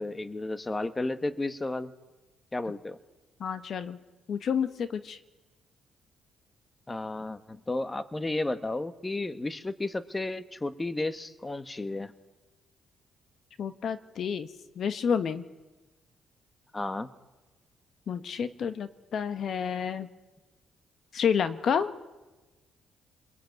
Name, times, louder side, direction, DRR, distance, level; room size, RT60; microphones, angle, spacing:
voice 1, 0.0-1.9 2.5-3.0 6.9-12.1 16.7-17.1, left 2 dB, 20° left, 12 dB, 1.3 m, -33 dB
voice 2, 3.4-4.0 4.3-5.2 13.6-14.5 14.7-15.4 18.1-20.1 21.1-21.9, left 7 dB, 60° left, 11 dB, 1.3 m, -29 dB
29.0 x 21.5 x 9.4 m, 1.1 s
cardioid pair, 90°, 0 cm